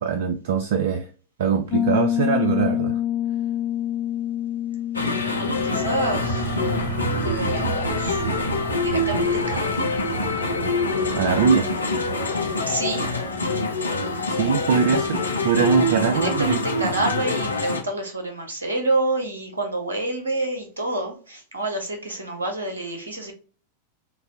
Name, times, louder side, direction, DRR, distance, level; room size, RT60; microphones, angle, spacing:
voice 1, 0.0-1.1 1.4-3.0 11.2-11.6 14.3-16.6, right 6 dB, 55° right, 0.4 m, -22 dB
Piano, 1.7-10.2, left 12 dB, 30° left, 0.3 m, -28 dB
sound 1, 4.9-17.8, left 3 dB, 80° left, 0.6 m, -25 dB
sound 2, 5.0-16.5, right 8 dB, 30° right, 0.8 m, -35 dB
voice 2, 5.6-6.6 7.2-8.2 8.8-9.9 12.7-13.1 16.1-23.3, right 2 dB, 70° right, 1.1 m, -28 dB
5.3 x 2.5 x 2.7 m
figure-of-eight pair, 90°, 0 cm